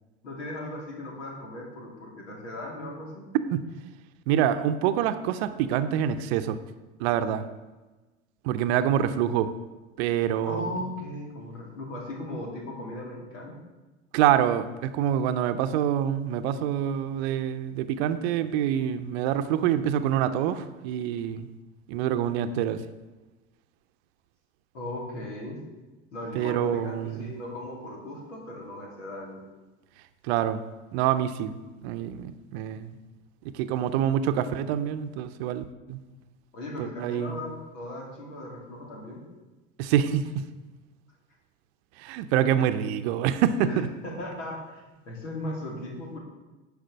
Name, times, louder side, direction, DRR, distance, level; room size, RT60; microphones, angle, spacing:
voice 1, 0.2-3.3 10.5-13.6 24.7-25.6 26.1-29.4 36.5-39.2 43.6-46.2, left 1 dB, 75° left, -1 dB, 2.4 m, -37 dB
voice 2, 4.3-6.6 7.0-7.4 8.4-9.5 10.0-10.8 14.1-21.5 21.9-22.8 26.3-27.3 30.2-30.6 30.9-31.5 31.8-33.0 33.4-36.0 36.8-37.4 39.8-40.5 42.0-43.9, right 10 dB, 60° right, 10 dB, 0.7 m, -26 dB
10.5 x 5.1 x 6.3 m, 1.2 s
hypercardioid pair, 80°, 37 cm